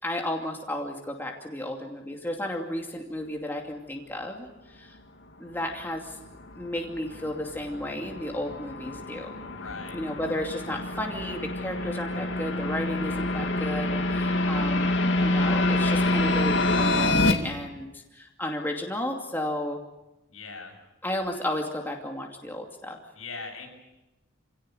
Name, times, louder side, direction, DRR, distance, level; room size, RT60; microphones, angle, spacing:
voice 1, 0.0-5.0 5.4-6.2 6.6-9.3 9.9-19.8 21.0-23.0, left 1 dB, 10° left, 1 dB, 2.6 m, -33 dB
sound 1, 5.8-17.3, left 2 dB, 60° left, 2.5 m, -27 dB
voice 2, 9.5-10.0 20.3-20.8 23.2-23.7, left 4 dB, 90° left, 1 dB, 7.8 m, -40 dB
28.0 x 17.0 x 9.2 m, 1.0 s
head